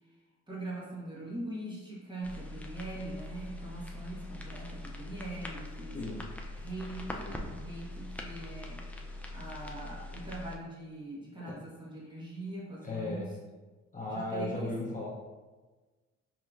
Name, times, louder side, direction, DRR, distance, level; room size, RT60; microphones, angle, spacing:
voice 1, 0.5-6.0 6.5-8.9 9.3-13.3 14.1-15.1, right 1 dB, 15° right, -6 dB, 1.4 m, -42 dB
sound 1, 2.2-10.6, left 1 dB, 5° left, 0.4 m, -42 dB
voice 2, 12.8-13.3 13.9-15.1, left 2 dB, 25° left, -6 dB, 0.8 m, -36 dB
5.1 x 2.8 x 2.5 m, 1.3 s
cardioid pair, 90°, 30 cm